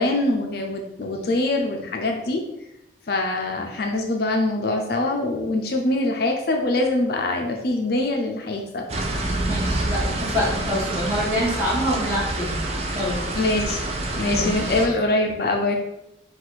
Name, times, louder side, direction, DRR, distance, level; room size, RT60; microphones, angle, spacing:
voice 1, 0.0-2.4 3.1-8.8 13.4-13.8 14.1-15.8, left 2 dB, 55° left, 2 dB, 0.5 m, -23 dB
sound 1, 8.9-14.9, right 2 dB, 35° right, 0.5 m, -27 dB
voice 2, 9.4-12.6 12.9-13.2 14.3-15.0, equal, 15° right, -6 dB, 1.3 m, -26 dB
4.6 x 2.4 x 4.0 m, 0.86 s
head